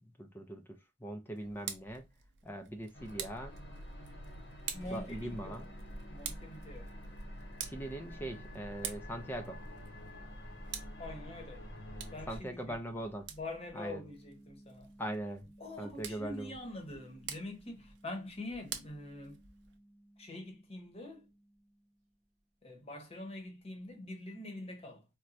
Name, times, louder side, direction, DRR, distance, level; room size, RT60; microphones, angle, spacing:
voice 1, 0.2-2.0 2.4-3.5 4.9-5.7 7.6-9.6 12.3-13.3 13.7-14.0 15.0-15.5 15.8-16.5, right 1 dB, 10° left, 0.4 m, -41 dB
Tick, 1.3-19.8, right 8 dB, 75° right, 0.6 m, -49 dB
sound 1, 2.9-12.4, equal, 70° left, 0.8 m, -47 dB
voice 2, 4.7-5.7 6.1-6.9 11.0-11.7 12.1-12.7 13.3-14.9 15.6-19.4 20.2-21.2 22.6-25.0, left 2 dB, 35° left, 0.9 m, -45 dB
sound 2, 4.8-22.3, right 1 dB, 40° right, 0.8 m, -60 dB
4.1 x 2.2 x 2.4 m
head